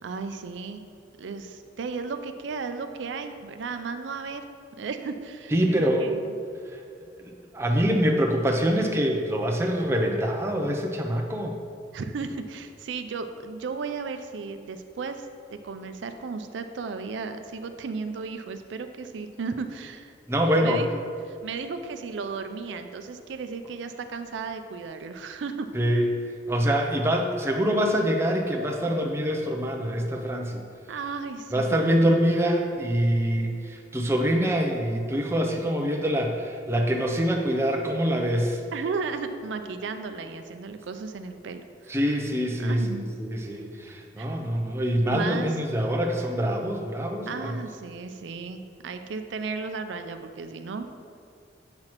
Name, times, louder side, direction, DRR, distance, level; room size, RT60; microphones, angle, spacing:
voice 1, 0.0-0.8 1.2-4.4 4.8-6.3 11.9-15.3 15.5-20.1 20.6-21.0 21.2-25.7 30.9-32.3 38.7-42.0 42.6-43.1 44.2-44.3 45.1-45.6 47.3-50.9, right 4 dB, 90° right, 8 dB, 0.4 m, -35 dB
voice 2, 5.5-6.1 6.7-6.8 7.2-11.6 20.3-20.8 25.7-26.2 26.5-30.6 31.5-38.6 41.9-42.8 43.2-47.5, equal, 15° right, 1 dB, 0.5 m, -25 dB
7.6 x 5.7 x 3.0 m, 2.3 s
head